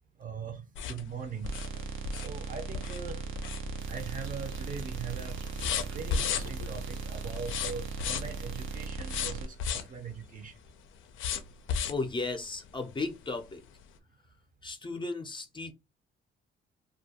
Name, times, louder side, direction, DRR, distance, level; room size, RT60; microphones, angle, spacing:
voice 1, 0.2-1.5 2.1-3.4 3.9-5.3 5.9-10.5, right 5 dB, 45° right, 0.6 m, -41 dB
sound 1, 0.7-4.1 4.5-4.8 5.1-6.8 7.3-8.4 9.0-10.0 11.2-12.1 12.6-12.7 13.1-13.2, left 7 dB, 80° left, 0.4 m, -34 dB
sound 2, 1.5-9.5, right 4 dB, 85° right, 0.6 m, -38 dB
sound 3, 3.8-8.9, right 4 dB, 65° right, 0.9 m, -50 dB
voice 2, 11.9-13.6 14.6-15.7, left 3 dB, 25° left, 0.5 m, -35 dB
2.3 x 2.2 x 2.8 m
cardioid pair, 90°, 20 cm